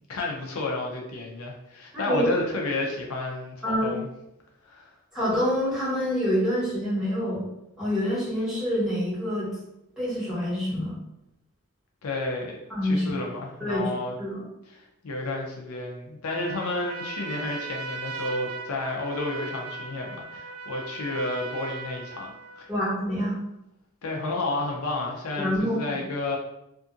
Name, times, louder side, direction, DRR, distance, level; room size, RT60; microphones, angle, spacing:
voice 1, 0.1-4.1 4.6-5.0 12.0-14.2 14.7-22.7 24.0-26.4, left 2 dB, 85° left, 0 dB, 0.6 m, -31 dB
voice 2, 1.9-2.3 3.6-3.9 5.1-7.4 7.8-9.5 10.0-10.9 12.7-13.1 13.6-13.9 14.2-14.4 22.7-23.4 25.4-25.8, equal, 5° right, -11 dB, 1.4 m, -26 dB
Trumpet, 16.2-22.7, right 4 dB, 80° right, 0.3 m, -38 dB
2.6 x 2.5 x 2.5 m, 0.85 s
head